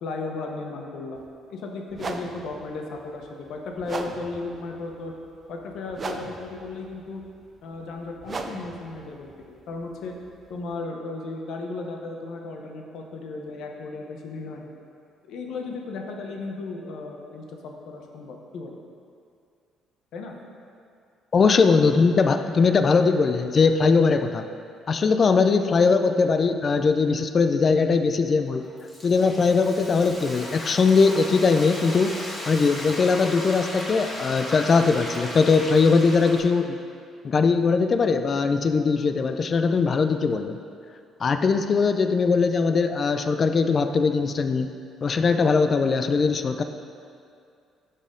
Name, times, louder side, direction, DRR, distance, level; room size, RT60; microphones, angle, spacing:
voice 1, 0.0-5.1 5.5-7.2 7.6-10.1 10.5-14.7 15.3-18.8 20.1-20.3, left 3 dB, 70° left, 2 dB, 0.9 m, -35 dB
sound 1, 1.1-1.3 1.9-10.7, right 3 dB, 35° right, 0.5 m, -39 dB
voice 2, 21.3-24.5 24.9-28.6 29.0-32.1 32.5-36.8 37.2-40.6 41.2-44.7 45.0-46.6, left 4 dB, 40° left, 8 dB, 0.4 m, -20 dB
Frying (food), 28.5-36.4, left 1 dB, 10° left, 1.5 m, -36 dB
11.5 x 4.2 x 3.8 m, 2.4 s
cardioid pair, 95°, 0 cm